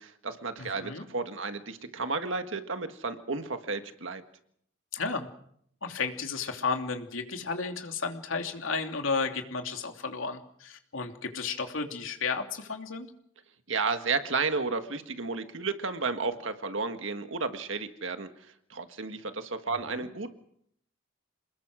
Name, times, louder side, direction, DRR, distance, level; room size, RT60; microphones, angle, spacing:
voice 1, 0.0-4.2 13.7-18.3 18.7-20.3, right 4 dB, 80° right, 8 dB, 1.7 m, -32 dB
voice 2, 0.6-1.0 4.9-5.3 5.8-13.1 19.9-20.1, left 4 dB, 85° left, 4 dB, 2.9 m, -33 dB
28.0 x 20.5 x 6.4 m, 0.69 s
head